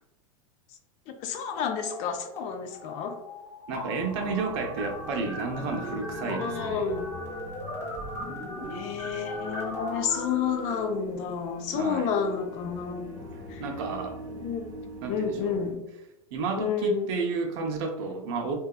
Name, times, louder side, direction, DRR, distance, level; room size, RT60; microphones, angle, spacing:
voice 1, 1.1-3.2 6.4-7.1 8.7-13.2 13.5-13.6 14.4-14.7 15.1-15.8 16.6-17.1, left 6 dB, 40° left, 6 dB, 0.4 m, -30 dB
sound 1, 1.5-2.4 2.7-10.7, left 1 dB, 15° left, 0.8 m, -38 dB
voice 2, 3.7-6.9 11.7-12.1 13.6-14.2 15.0-15.6 16.3-18.6, right 4 dB, 55° right, 3 dB, 0.5 m, -31 dB
sound 2, 4.0-15.7, right 1 dB, 20° right, 0.9 m, -42 dB
2.7 x 2.2 x 2.3 m, 0.93 s
hypercardioid pair, 110°, 18 cm